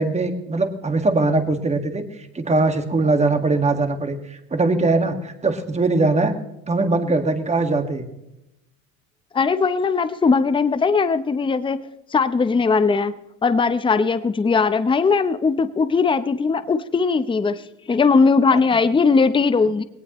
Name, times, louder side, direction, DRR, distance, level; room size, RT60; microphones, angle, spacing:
voice 1, 0.0-6.3 6.7-8.1 18.5-18.6, right 3 dB, 15° right, 7 dB, 1.9 m, -21 dB
voice 2, 9.3-11.8 12.1-13.1 13.4-17.6 17.9-19.8, left 4 dB, 10° left, 12 dB, 0.7 m, -19 dB
20.0 x 18.0 x 3.1 m, 0.90 s
supercardioid pair, 105°, 41 cm